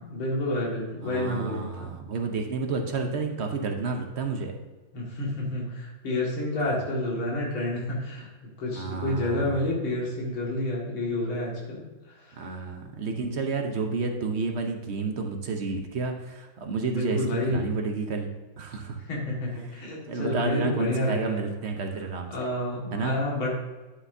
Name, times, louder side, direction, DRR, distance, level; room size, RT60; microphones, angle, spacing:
voice 1, 0.0-2.0 4.9-8.3 8.6-12.5 17.0-17.7 19.1-21.4 22.3-23.5, left 1 dB, 90° left, -4 dB, 2.9 m, -29 dB
voice 2, 1.0-4.5 8.7-9.6 12.3-18.3 18.6-19.0 20.1-22.3 22.9-23.2, right 4 dB, 50° right, 3 dB, 0.8 m, -30 dB
9.9 x 8.7 x 2.7 m, 1.2 s
omnidirectional pair, 2.2 m